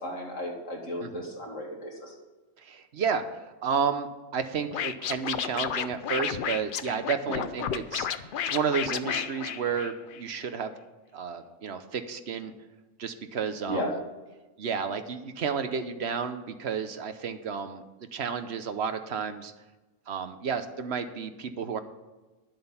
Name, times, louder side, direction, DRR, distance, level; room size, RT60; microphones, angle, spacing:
voice 1, 0.0-2.1 7.3-7.4 13.7-13.9, equal, 90° left, -1 dB, 2.7 m, -34 dB
voice 2, 2.6-8.1 8.4-10.7 11.1-12.5 13.0-13.8 14.6-17.8 18.1-19.5 20.1-21.8, right 6 dB, 60° right, 9 dB, 1.0 m, -31 dB
Scratching (performance technique), 4.7-10.2, left 9 dB, 60° left, 0.6 m, -32 dB
11.0 x 7.6 x 5.7 m, 1.1 s
omnidirectional pair, 1.3 m